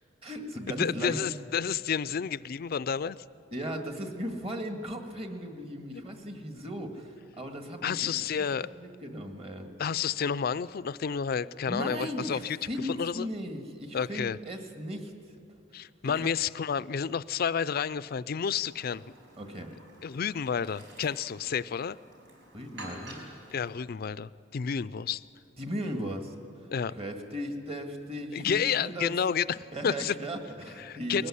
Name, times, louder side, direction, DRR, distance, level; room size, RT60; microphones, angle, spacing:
voice 1, 0.2-1.2 3.5-8.5 8.8-9.7 11.6-15.1 16.0-16.3 19.4-19.7 22.5-23.2 25.6-26.3 27.0-29.2 29.7-31.3, equal, 30° right, 4 dB, 1.9 m, -37 dB
voice 2, 0.8-3.2 7.8-8.7 9.8-13.3 13.9-14.4 15.7-19.0 20.0-22.0 23.5-25.2 26.7-27.0 28.3-29.6 29.8-30.1 30.8-31.3, left 7 dB, 55° left, 18 dB, 0.4 m, -30 dB
Chirp tweet, 18.6-23.7, right 1 dB, 85° right, 5.2 m, -49 dB
20.5 x 15.0 x 9.9 m, 2.4 s
head